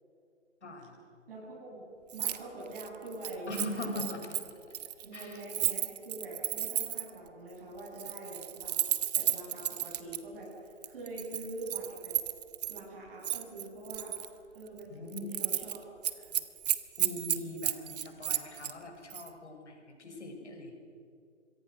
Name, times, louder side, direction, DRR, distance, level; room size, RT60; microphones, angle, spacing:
voice 1, 0.6-1.0 3.5-4.2 5.1-5.4 14.9-15.4 17.0-20.7, left 2 dB, 65° left, 2 dB, 6.6 m, -41 dB
voice 2, 1.3-1.8 2.1-4.0 5.0-8.8 9.1-12.2 12.7-14.2 14.5-16.4, right 2 dB, 50° right, -5 dB, 7.6 m, -44 dB
Keys jangling, 2.1-2.4 2.7-7.2 7.9-10.2 10.8-12.8 13.2-14.3 14.7-14.8 15.1-15.8 16.0-18.7 19.1-19.3, right 11 dB, 35° right, 1.1 m, -33 dB
25.5 x 23.0 x 6.5 m, 2.6 s
figure-of-eight pair, 140°, 37 cm